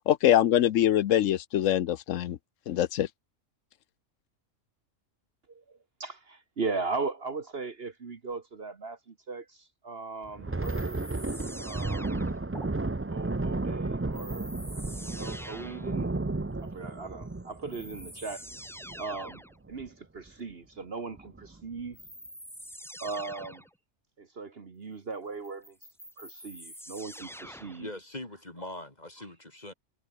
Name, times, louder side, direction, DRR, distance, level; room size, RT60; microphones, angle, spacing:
voice 1, 0.1-2.4 2.7-3.1, left 11 dB, 80° left, 1.1 m, -23 dB
voice 2, 6.0-9.0 9.3-9.4 9.8-11.0 11.6-12.2 13.1-14.5 15.1-16.1 16.6-18.4 19.0-19.4 19.7-22.0 23.0-23.6 24.2-25.6 26.2-27.9, right 4 dB, 50° right, 1.6 m, -37 dB
Thunder, 10.3-19.3 19.7-19.9 20.3-20.5 21.1-21.6, right 2 dB, 15° right, 0.4 m, -33 dB
sound 1, 10.6-12.7 14.1-16.0 17.2-17.3 17.7-19.6 21.9-23.7 25.4-27.9, equal, ahead, 2.8 m, -45 dB
voice 3, 27.4-29.7, left 1 dB, 35° left, 3.2 m, -42 dB
omnidirectional pair, 1.3 m